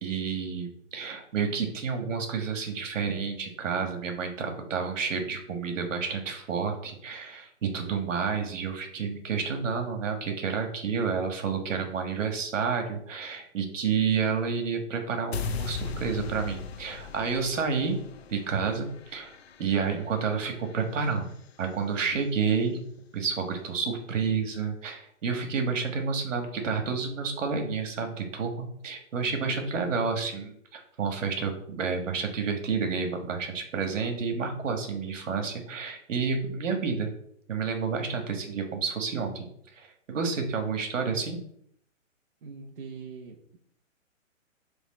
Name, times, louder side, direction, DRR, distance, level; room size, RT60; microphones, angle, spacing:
voice 1, 0.0-18.0 18.3-21.3 21.6-22.8 23.1-37.1 37.5-41.4, right 5 dB, 70° right, 4 dB, 1.5 m, -30 dB
sound 1, 15.3-21.5, left 5 dB, 50° left, 0.5 m, -39 dB
voice 2, 29.4-29.8 42.4-43.6, right 4 dB, 45° right, -1 dB, 0.8 m, -41 dB
7.2 x 3.4 x 4.1 m, 0.68 s
hypercardioid pair, 170°, 40 cm